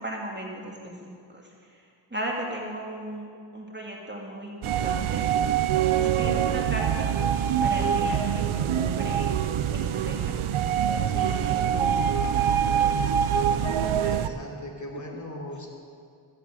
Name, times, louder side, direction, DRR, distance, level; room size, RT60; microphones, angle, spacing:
voice 1, 0.0-5.2 6.0-7.3 7.6-9.3 9.7-10.4 11.1-12.4 13.6-14.2 14.9-15.2, right 1 dB, 20° right, -2 dB, 2.3 m, -37 dB
sound 1, 4.6-14.3, right 9 dB, 85° right, 0.6 m, -24 dB
voice 2, 13.4-15.7, left 1 dB, 35° left, -1 dB, 3.3 m, -39 dB
15.0 x 8.4 x 7.5 m, 2.2 s
cardioid pair, 45°, 48 cm